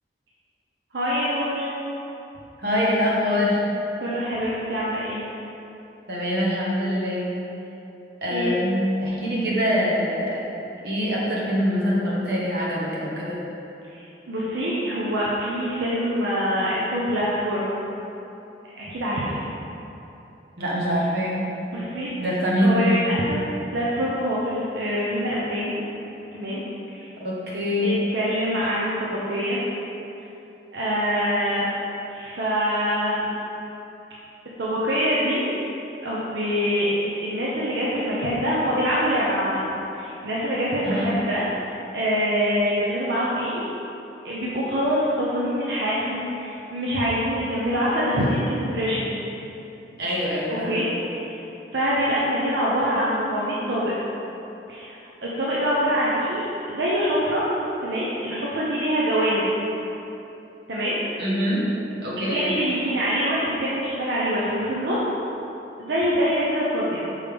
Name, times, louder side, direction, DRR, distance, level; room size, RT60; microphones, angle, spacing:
voice 1, 0.9-1.7 4.0-5.2 8.3-8.5 13.9-17.7 18.8-19.4 21.7-22.1 22.6-23.4 23.7-25.8 26.3-27.1 27.8-29.6 30.7-31.7 32.1-33.3 34.6-35.5 36.0-41.5 41.9-43.6 44.2-49.1 50.5-50.9 51.1-51.3 51.7-53.9 54.7-57.4 57.8-59.5 60.7-61.0 62.2-65.0 65.8-67.1, equal, 80° right, -7 dB, 0.8 m, -25 dB
voice 2, 2.6-3.6 6.1-7.3 8.2-10.5 10.8-13.4 20.6-21.5 22.2-22.9 27.2-27.9 40.8-41.1 50.0-50.8 61.2-61.7 62.0-62.5, equal, 65° right, -5 dB, 1.2 m, -24 dB
5.4 x 5.0 x 3.5 m, 2.9 s
head